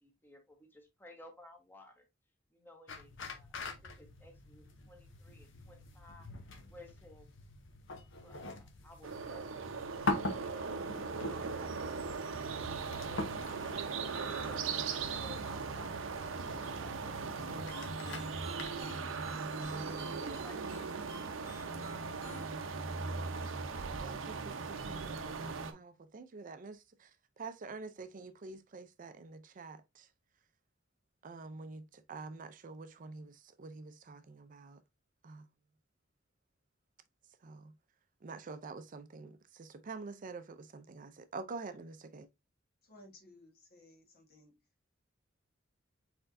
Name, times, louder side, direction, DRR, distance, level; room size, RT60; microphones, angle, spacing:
voice 1, 0.0-2.1 2.5-6.3 6.7-7.3 8.2-13.8 14.3-19.1 19.5-21.7, left 1 dB, 10° left, 1.1 m, -57 dB
sound 1, 2.9-18.9, left 2 dB, 70° left, 0.9 m, -44 dB
Boleskine Power Station, 9.0-25.7, right 4 dB, 90° right, 0.7 m, -39 dB
sound 2, 17.7-22.5, right 1 dB, 15° right, 1.3 m, -53 dB
voice 2, 24.0-27.1 27.4-30.1 31.2-34.8 35.2-35.5 37.4-37.7 38.2-42.3, right 4 dB, 45° right, 0.5 m, -47 dB
voice 3, 42.8-44.6, left 1 dB, 55° left, 1.4 m, -58 dB
4.4 x 4.4 x 2.6 m
head